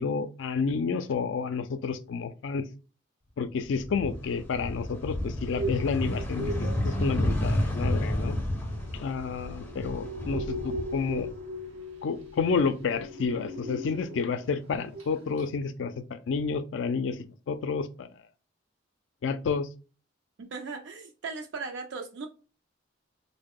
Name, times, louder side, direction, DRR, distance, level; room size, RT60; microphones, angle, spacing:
voice 1, 0.0-2.7 3.4-8.4 8.9-11.3 12.0-18.1 19.2-19.7, left 5 dB, 70° left, 0.3 m, -30 dB
sound 1, 3.6-11.7 12.1-13.3, left 1 dB, 10° left, 0.5 m, -31 dB
sound 2, 5.2-14.5 14.8-15.1 15.4-15.5, equal, 85° right, 0.8 m, -39 dB
voice 2, 20.5-22.3, right 4 dB, 65° right, 0.4 m, -37 dB
3.7 x 2.1 x 3.5 m
head